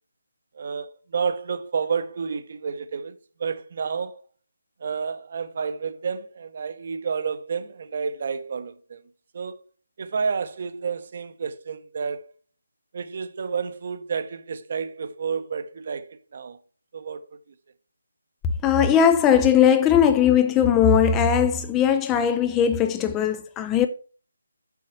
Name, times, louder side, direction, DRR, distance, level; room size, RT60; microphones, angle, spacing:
voice 1, 0.5-4.2 4.8-9.0 9.3-9.6 10.0-12.3 12.9-16.6 16.9-17.4, right 5 dB, 40° right, 0.8 m, -30 dB
voice 2, 18.6-23.9, left 8 dB, 10° left, 0.4 m, -19 dB
7.1 x 6.4 x 5.7 m
figure-of-eight pair, 150°, 0 cm